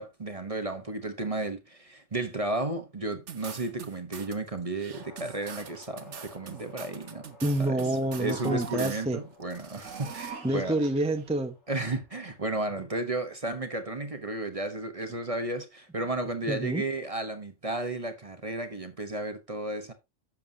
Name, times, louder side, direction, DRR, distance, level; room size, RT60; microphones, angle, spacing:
voice 1, 0.0-7.3 7.6-7.8 8.2-10.8 11.7-19.9, right 2 dB, 30° right, 1.0 m, -33 dB
sound 1, 3.3-4.4 4.7-9.1 9.4-10.3, right 7 dB, 70° right, 1.4 m, -44 dB
sound 2, 4.9-13.4, left 3 dB, 65° left, 5.4 m, -55 dB
voice 2, 7.4-9.2 10.4-11.5 16.5-16.8, right 1 dB, 5° right, 0.8 m, -28 dB
sound 3, 7.8-9.1 9.7-11.3, right 6 dB, 90° right, 1.9 m, -42 dB
11.0 x 7.2 x 2.8 m
omnidirectional pair, 1.3 m